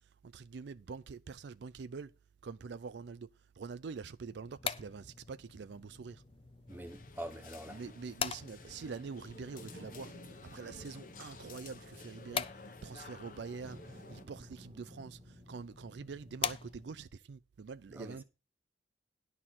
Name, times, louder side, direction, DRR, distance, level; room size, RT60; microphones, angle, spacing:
voice 1, 0.0-2.1 2.4-6.2 7.7-12.5 12.8-18.2, right 5 dB, 70° right, 0.4 m, -45 dB
sound 1, 4.3-17.2, left 7 dB, 30° left, 0.4 m, -44 dB
sound 2, 6.7-14.3, left 3 dB, 45° left, 1.0 m, -53 dB
voice 2, 6.7-7.8 17.9-18.2, right 1 dB, 10° right, 1.0 m, -45 dB
sound 3, 9.6-13.2 13.6-17.0, right 1 dB, 30° right, 0.7 m, -57 dB
11.0 x 4.3 x 7.4 m
head